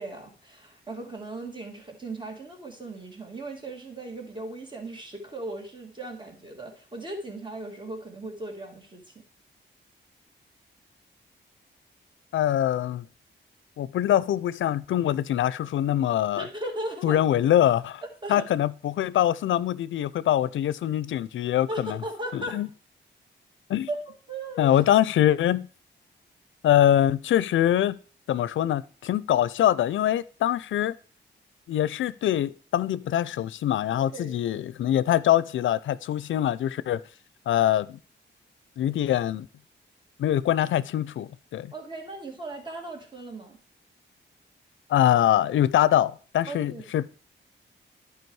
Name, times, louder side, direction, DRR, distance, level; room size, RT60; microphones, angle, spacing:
voice 1, 0.0-9.0 16.4-17.2 18.2-18.5 21.7-22.6 23.9-24.8 33.9-34.4 41.7-43.6 46.5-46.8, right 2 dB, 25° right, 2.5 m, -37 dB
voice 2, 12.3-13.0 13.8-16.5 17.0-18.0 18.3-22.0 22.3-22.7 23.7-23.9 24.6-25.7 26.6-28.0 28.3-30.9 31.7-37.0 37.5-38.0 38.8-39.5 40.2-41.7 44.9-47.1, left 11 dB, 85° left, 0.4 m, -23 dB
10.5 x 4.9 x 4.7 m
cardioid pair, 95°, 19 cm